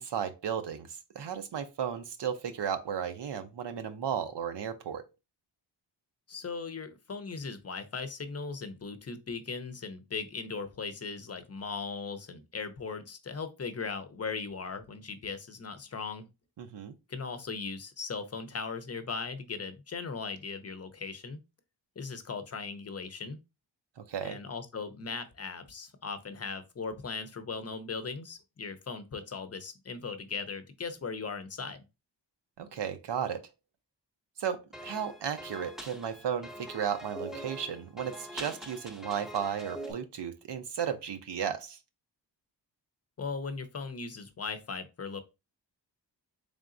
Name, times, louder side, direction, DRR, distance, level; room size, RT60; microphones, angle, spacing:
voice 1, 0.0-5.1 16.6-16.9 24.0-24.4 32.6-33.4 34.4-41.8, right 8 dB, 70° right, 0.6 m, -34 dB
voice 2, 6.3-16.3 17.1-21.4 22.0-23.4 24.2-31.8 43.2-45.2, left 4 dB, 35° left, 0.6 m, -38 dB
sound 1, 34.7-39.9, right 1 dB, ahead, 0.6 m, -43 dB
3.8 x 3.5 x 2.5 m
wide cardioid pair, 85°, 44 cm